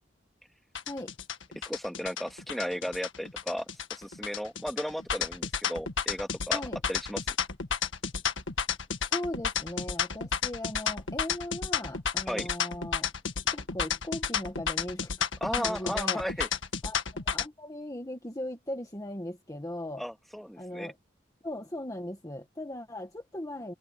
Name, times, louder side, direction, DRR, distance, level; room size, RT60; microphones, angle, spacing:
sound 1, 0.8-17.5, left 7 dB, 80° left, 1.7 m, -31 dB
voice 1, 1.6-6.6 6.9-7.2 12.3-12.5 15.4-16.5 20.0-20.9, equal, ahead, 2.5 m, -35 dB
voice 2, 9.1-13.1 13.5-15.3 15.6-16.2 16.8-20.0 20.6-21.0 21.4-23.7, left 1 dB, 20° left, 1.7 m, -38 dB
head